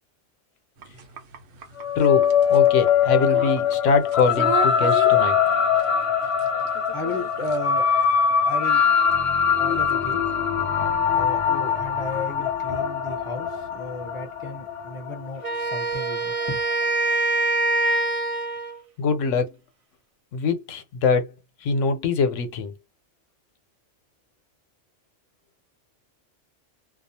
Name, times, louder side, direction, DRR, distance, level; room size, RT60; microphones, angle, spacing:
sound 1, 0.8-9.9, right 5 dB, 80° right, 1.0 m, -38 dB
sound 2, 1.8-16.5, left 7 dB, 50° left, 0.4 m, -22 dB
voice 1, 2.0-5.4 19.0-19.5 20.3-21.3 21.6-22.7, left 5 dB, 90° left, 1.0 m, -23 dB
voice 2, 6.9-7.9 8.5-8.8 9.6-10.4 11.1-16.6, left 2 dB, 30° left, 0.8 m, -34 dB
Wind instrument woodwind instrument, 15.4-18.8, right 2 dB, 50° right, 0.4 m, -24 dB
2.4 x 2.3 x 2.7 m
omnidirectional pair, 1.2 m